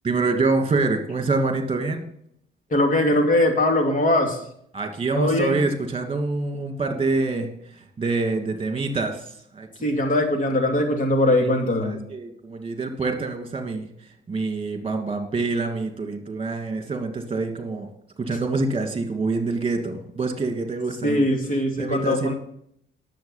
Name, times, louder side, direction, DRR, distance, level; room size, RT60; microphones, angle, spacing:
voice 1, 0.0-2.0 4.7-10.0 11.2-11.3 11.8-17.9 18.2-21.3 21.8-22.3, right 3 dB, 30° right, 5 dB, 2.6 m, -26 dB
voice 2, 2.7-4.4 5.1-5.6 9.8-12.0 21.0-22.3, left 1 dB, 40° left, 3 dB, 2.8 m, -21 dB
10.5 x 7.7 x 5.8 m, 0.68 s
cardioid pair, 90°, 20 cm